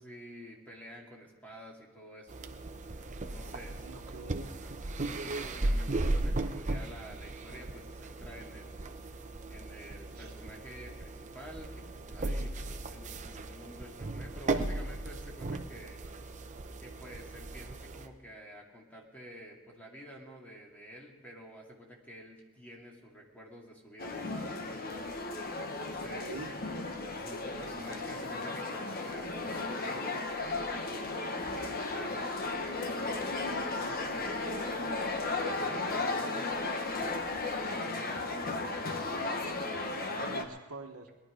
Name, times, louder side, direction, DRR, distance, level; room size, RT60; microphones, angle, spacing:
voice 1, 0.0-2.7 3.3-3.9 4.8-8.9 9.5-16.0 16.8-24.8 25.8-26.3 27.1-30.8 31.5-40.4, equal, 10° left, -2 dB, 2.2 m, -50 dB
sound 1, 2.3-18.1, right 2 dB, 35° right, 0.8 m, -36 dB
voice 2, 3.4-4.5 10.2-10.3 26.1-26.5 40.1-41.1, right 3 dB, 80° right, 5 dB, 1.3 m, -45 dB
sound 2, 24.0-40.4, left 3 dB, 45° left, 1.2 m, -35 dB
19.5 x 11.5 x 5.0 m, 1.2 s
head